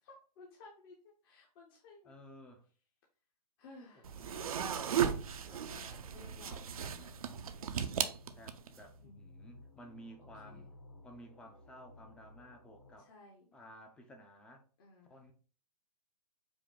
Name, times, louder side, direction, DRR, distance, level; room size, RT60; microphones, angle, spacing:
voice 1, 0.0-1.0 1.2-2.1 3.6-4.6 4.9-7.1 9.0-9.3 10.4-10.7 13.0-13.5 14.8-15.1, left 3 dB, 35° left, 0.8 m, -57 dB
voice 2, 2.1-2.7 3.9-5.0 6.4-6.6 8.3-10.7 11.0-13.1 13.5-14.7 15.0-15.3, equal, 5° left, 0.5 m, -55 dB
sound 1, 4.0-8.8, right 8 dB, 60° right, 0.5 m, -36 dB
sound 2, 5.7-13.0, left 2 dB, 65° left, 1.6 m, -57 dB
5.0 x 2.2 x 3.8 m
figure-of-eight pair, 130°, 21 cm